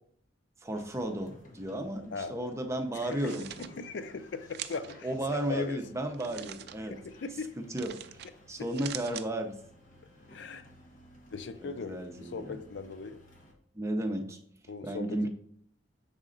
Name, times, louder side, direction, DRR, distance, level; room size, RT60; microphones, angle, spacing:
voice 1, 0.6-3.4 5.0-7.0 7.6-8.2 8.5-9.6 11.6-12.6 13.7-14.4 14.8-15.3, right 1 dB, 15° right, 4 dB, 0.6 m, -34 dB
sound 1, 0.7-13.5, left 1 dB, 45° left, 1.2 m, -56 dB
voice 2, 2.9-3.3 3.8-5.8 6.4-6.5 6.9-7.6 8.6-8.7 10.3-10.6 11.3-13.2 14.7-15.3, left 4 dB, 70° left, 11 dB, 0.5 m, -39 dB
sound 2, 3.0-3.7 4.5-5.0 6.1-6.8 7.8-8.3 8.6-9.3, right 11 dB, 60° right, 0.4 m, -42 dB
6.2 x 4.2 x 3.8 m, 0.65 s
head